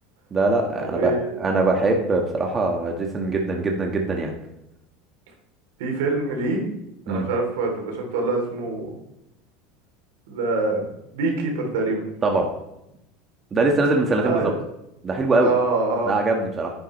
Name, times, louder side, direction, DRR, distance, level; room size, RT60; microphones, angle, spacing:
voice 1, 0.3-1.1 1.4-4.3 7.1-7.3 12.2-12.5 13.5-14.5 15.0-15.5 16.1-16.7, right 2 dB, 25° right, 2 dB, 1.7 m, -22 dB
voice 2, 0.9-1.3 5.8-6.6 7.1-8.9 10.3-10.9 11.1-12.0 14.2-14.6 15.4-16.1, right 3 dB, 80° right, 1 dB, 3.3 m, -25 dB
10.0 x 9.6 x 3.3 m, 0.84 s
supercardioid pair, 115°, 0 cm